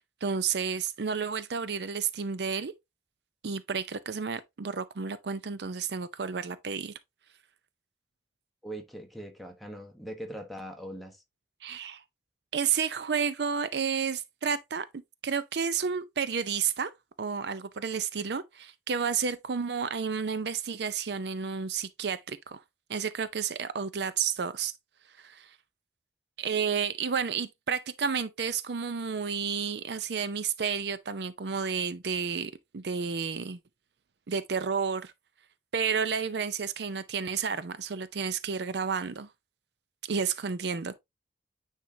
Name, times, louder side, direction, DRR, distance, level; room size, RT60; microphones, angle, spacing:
voice 1, 0.0-2.7 3.4-6.9 11.6-12.0 12.5-14.9 15.2-16.9 17.2-22.6 22.9-24.7 25.2-25.5 26.4-33.6 34.3-35.1 35.7-39.3 40.1-40.9, right 6 dB, 70° right, 0.5 m, -31 dB
voice 2, 8.6-11.2, right 1 dB, ahead, 1.1 m, -41 dB
9.3 x 3.7 x 2.7 m
head